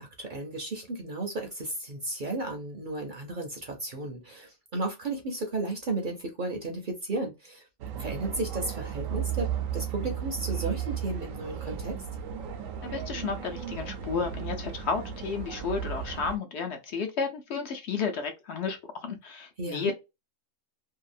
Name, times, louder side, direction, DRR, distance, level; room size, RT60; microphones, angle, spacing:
voice 1, 0.0-7.6 8.0-12.0 19.6-19.9, right 2 dB, 50° right, 0.7 m, -34 dB
sound 1, 7.8-16.4, right 9 dB, 75° right, 1.0 m, -35 dB
voice 2, 12.8-19.9, left 5 dB, 65° left, 0.8 m, -32 dB
2.8 x 2.3 x 2.5 m
omnidirectional pair, 1.4 m